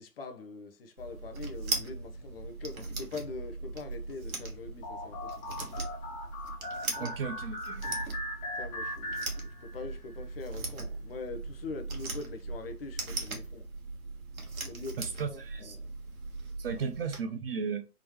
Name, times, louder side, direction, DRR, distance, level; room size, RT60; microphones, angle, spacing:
voice 1, 0.0-5.7 6.9-7.1 8.5-13.6 14.6-15.0 15.3-16.0 16.7-16.8, left 3 dB, 40° left, 0.7 m, -43 dB
sound 1, 1.0-17.2, right 3 dB, 60° right, 1.4 m, -39 dB
sound 2, 4.8-9.9, left 1 dB, 20° left, 1.0 m, -39 dB
voice 2, 7.0-8.0 15.0-15.8 16.6-17.9, right 5 dB, 40° right, 0.6 m, -35 dB
3.6 x 3.0 x 3.0 m
figure-of-eight pair, 125°, 46 cm